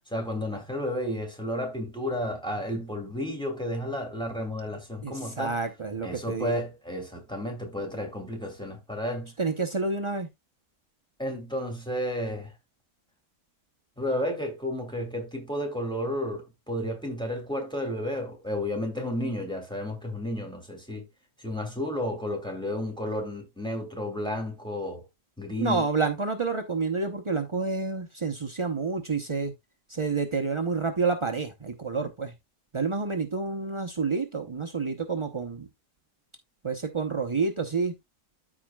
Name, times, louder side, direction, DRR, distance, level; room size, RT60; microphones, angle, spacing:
voice 1, 0.1-5.6 6.0-9.3 11.2-12.5 14.0-21.1 21.4-25.0 25.4-25.9, left 1 dB, 5° left, 2.5 m, -32 dB
voice 2, 5.0-6.5 9.4-10.3 25.6-29.5 29.9-32.3 32.7-35.7 36.6-37.9, right 4 dB, 40° right, 0.4 m, -29 dB
13.5 x 4.9 x 2.3 m
omnidirectional pair, 1.7 m